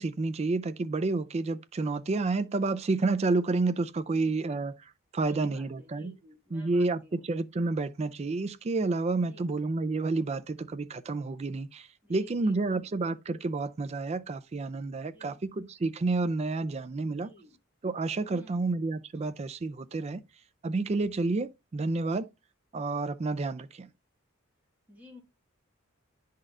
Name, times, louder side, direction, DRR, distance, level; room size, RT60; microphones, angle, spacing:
voice 1, 0.0-4.7 5.1-6.1 6.5-17.3 17.8-20.2 20.6-22.3 22.7-23.9, right 3 dB, 30° right, 0.4 m, -30 dB
voice 2, 4.1-4.6 5.3-7.2 9.2-9.5 12.0-12.9 15.0-15.4 17.1-17.6 18.3-18.7 24.9-25.2, left 1 dB, 10° right, 1.8 m, -54 dB
10.0 x 4.1 x 2.5 m
head